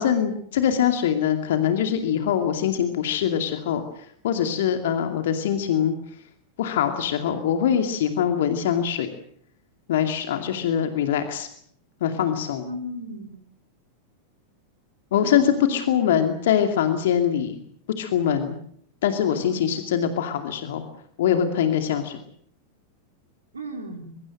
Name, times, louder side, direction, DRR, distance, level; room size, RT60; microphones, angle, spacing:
voice 1, 0.0-3.8 4.2-5.9 6.6-9.1 9.9-11.5 12.0-12.7 15.1-17.6 18.0-18.6 19.0-20.8 21.2-22.2, left 9 dB, 55° left, 7 dB, 2.5 m, -23 dB
voice 2, 12.6-13.4 15.2-15.8 19.3-19.5 23.5-24.2, equal, 75° right, 4 dB, 3.9 m, -35 dB
23.5 x 22.5 x 7.7 m, 0.63 s
figure-of-eight pair, 90°, 0 cm